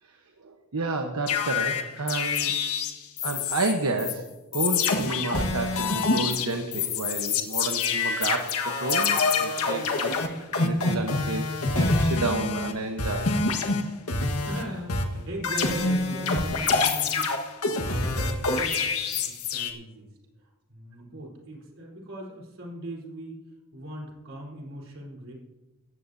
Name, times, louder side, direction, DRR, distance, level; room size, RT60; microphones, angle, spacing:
voice 1, 0.4-2.6 3.2-4.3 4.5-13.3, right 3 dB, 80° right, 4 dB, 1.1 m, -31 dB
sound 1, 1.3-3.7 4.0-4.1 4.5-12.7 13.0-14.6 14.9-19.7, left 4 dB, 80° left, 1.4 m, -26 dB
voice 2, 14.4-17.3 17.8-18.8 19.1-20.1 20.4-23.4 23.7-25.3, right 1 dB, 60° right, -2 dB, 3.7 m, -40 dB
17.0 x 14.0 x 2.7 m, 1.1 s
head